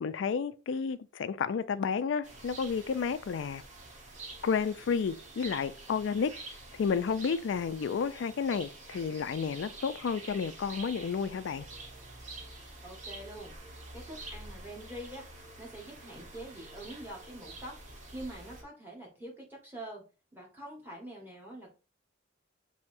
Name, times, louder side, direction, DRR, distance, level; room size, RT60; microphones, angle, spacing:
voice 1, 0.0-3.6 4.4-6.3 6.7-11.7, left 6 dB, 70° left, 0.3 m, -31 dB
sound 1, 2.2-18.6, right 2 dB, 40° right, 1.0 m, -47 dB
voice 2, 12.8-13.5 13.9-15.2 15.6-17.7 18.1-20.0 20.3-21.7, right 1 dB, 10° right, 1.4 m, -45 dB
6.6 x 2.8 x 2.6 m
head